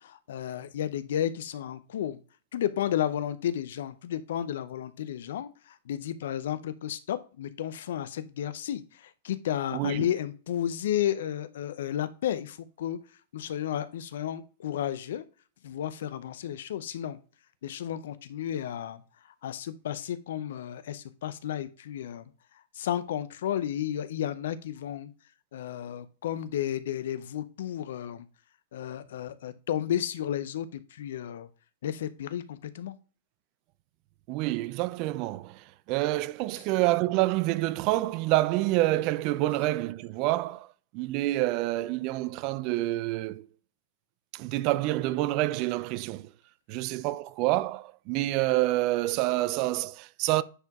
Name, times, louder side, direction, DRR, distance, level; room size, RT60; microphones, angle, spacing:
voice 1, 0.0-2.2 2.5-13.0 13.3-15.2 15.6-17.2 17.6-19.0 19.4-22.3 22.8-25.1 25.5-28.2 28.7-31.5 31.8-32.9, left 10 dB, 65° left, 0.5 m, -32 dB
voice 2, 9.7-10.1 34.3-40.7 40.9-43.5 44.3-46.3 46.7-50.4, right 17 dB, 45° right, 0.4 m, -27 dB
9.9 x 4.5 x 2.3 m
hypercardioid pair, 105°, 0 cm